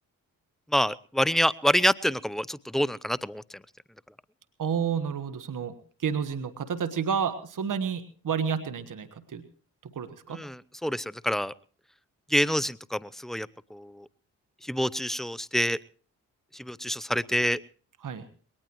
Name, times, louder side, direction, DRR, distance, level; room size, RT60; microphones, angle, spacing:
voice 1, 0.7-3.4 10.3-11.5 12.3-14.1 14.6-15.8 16.5-17.6, equal, ahead, 20 dB, 0.6 m, -27 dB
voice 2, 4.6-9.4 9.8-10.4 18.0-18.2, right 7 dB, 55° right, 11 dB, 1.5 m, -30 dB
21.0 x 18.5 x 3.1 m, 0.42 s
supercardioid pair, 50°, 38 cm